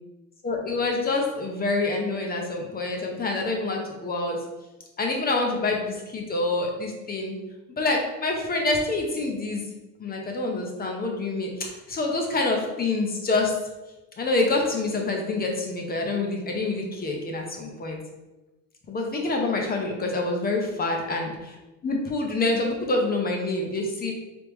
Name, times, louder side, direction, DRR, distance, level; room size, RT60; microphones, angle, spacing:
voice 1, 0.4-4.4 5.0-7.4 7.8-9.6 10.0-13.5 14.2-18.0 18.9-21.6 21.8-24.1, left 2 dB, 25° left, 1 dB, 0.6 m, -26 dB
3.5 x 2.8 x 3.1 m, 1.1 s
supercardioid pair, 115°, 40 cm